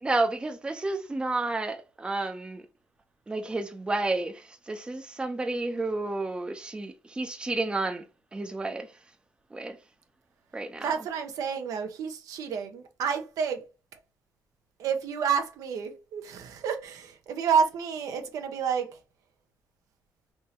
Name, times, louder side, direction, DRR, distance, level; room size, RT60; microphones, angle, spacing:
voice 1, 0.0-2.6 3.3-8.0 8.3-8.9 9.5-9.8 10.5-10.9, right 2 dB, 15° right, 0.6 m, -31 dB
voice 2, 10.8-13.6 14.8-18.9, right 7 dB, 80° right, 0.8 m, -29 dB
3.6 x 2.8 x 4.3 m
cardioid pair, 110°, 6 cm